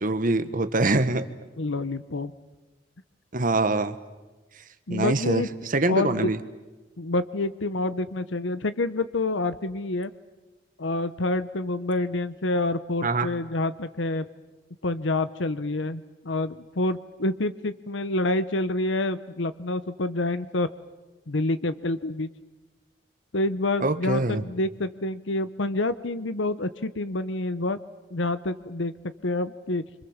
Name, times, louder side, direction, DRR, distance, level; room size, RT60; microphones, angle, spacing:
voice 1, 0.0-1.2 3.3-4.0 4.9-6.4 13.0-13.3 23.8-24.4, right 2 dB, 45° right, 11 dB, 1.3 m, -24 dB
voice 2, 1.6-2.3 4.9-5.5 5.9-6.3 7.0-10.1 10.8-14.3 14.8-20.7 21.3-22.3 23.3-27.8 28.1-28.9 29.2-29.8, left 2 dB, 85° left, 13 dB, 1.0 m, -27 dB
28.5 x 25.5 x 7.3 m, 1.2 s
head